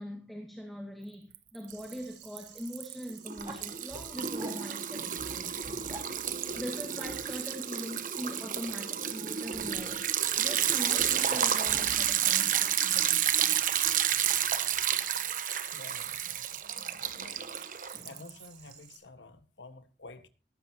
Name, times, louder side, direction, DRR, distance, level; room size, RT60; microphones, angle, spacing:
voice 1, 0.0-5.6 6.6-10.0 10.4-13.2, equal, ahead, 2.0 m, -42 dB
Liquid, 1.3-1.9 2.3-18.4, right 9 dB, 45° right, 1.1 m, -30 dB
sound 1, 1.7-19.0, right 9 dB, 75° right, 4.1 m, -55 dB
sound 2, 3.4-3.6 4.4-4.9 5.6-6.1 7.0-7.2, right 1 dB, 20° right, 4.0 m, -45 dB
voice 2, 15.7-16.6 17.1-17.4 18.0-20.3, left 2 dB, 80° left, 1.6 m, -50 dB
19.0 x 13.5 x 2.9 m
head